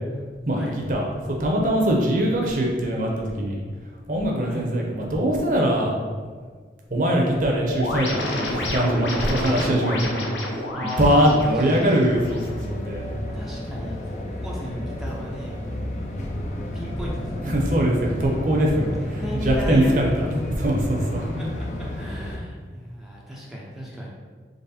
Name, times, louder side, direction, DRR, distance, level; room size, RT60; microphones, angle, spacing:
voice 1, 0.5-1.1 1.4-3.6 4.1-5.9 6.9-10.2 10.8-12.4 12.7-13.0 17.4-20.3 20.6-21.3, equal, 45° right, -1 dB, 0.8 m, -22 dB
sound 1, 7.7-12.7, left 1 dB, 90° left, 0.8 m, -30 dB
voice 2, 10.7-11.9 13.3-15.8 16.5-17.5 19.0-20.1 21.2-24.1, equal, ahead, -5 dB, 0.6 m, -35 dB
sound 2, 12.0-22.4, left 1 dB, 40° left, 0.6 m, -31 dB
4.0 x 3.2 x 4.1 m, 1.5 s
head